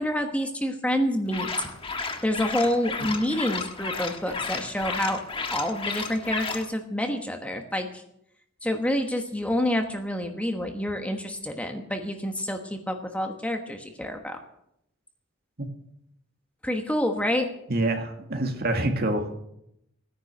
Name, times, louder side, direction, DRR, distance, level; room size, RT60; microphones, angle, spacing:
voice 1, 0.0-1.5 2.2-5.2 5.5-7.9 8.6-14.4 16.6-17.5, left 1 dB, 5° left, 4 dB, 1.2 m, -28 dB
sound 1, 1.3-6.7, left 4 dB, 25° left, 1.4 m, -33 dB
voice 2, 17.7-19.4, right 1 dB, 50° right, 4 dB, 2.0 m, -26 dB
17.0 x 10.0 x 6.7 m, 0.78 s
head